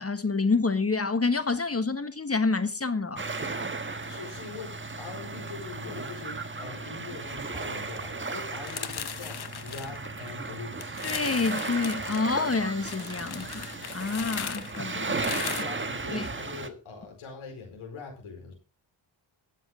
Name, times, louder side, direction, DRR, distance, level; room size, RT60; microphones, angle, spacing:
voice 1, 0.0-3.2 11.0-15.2 16.1-16.3, left 4 dB, 30° left, 1.3 m, -28 dB
sound 1, 3.2-16.7, right 3 dB, 25° right, 1.5 m, -35 dB
voice 2, 4.1-11.0 15.1-18.5, left 4 dB, 85° left, 4.7 m, -42 dB
sound 2, 8.7-10.5 10.8-12.2 12.8-15.6, left 8 dB, 50° left, 1.1 m, -37 dB
20.0 x 7.5 x 3.7 m
cardioid pair, 55°, 49 cm